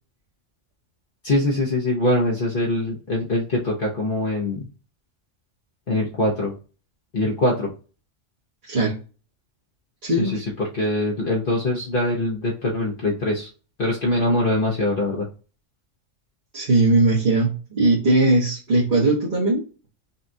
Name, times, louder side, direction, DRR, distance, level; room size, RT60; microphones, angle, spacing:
voice 1, 1.2-4.7 5.9-6.5 7.1-7.7 10.2-13.5 13.8-15.3, left 1 dB, 50° left, -3 dB, 0.9 m, -23 dB
voice 2, 10.0-10.4 16.5-19.6, right 2 dB, 45° right, -7 dB, 1.2 m, -19 dB
5.5 x 2.4 x 2.6 m, 0.35 s
omnidirectional pair, 1.3 m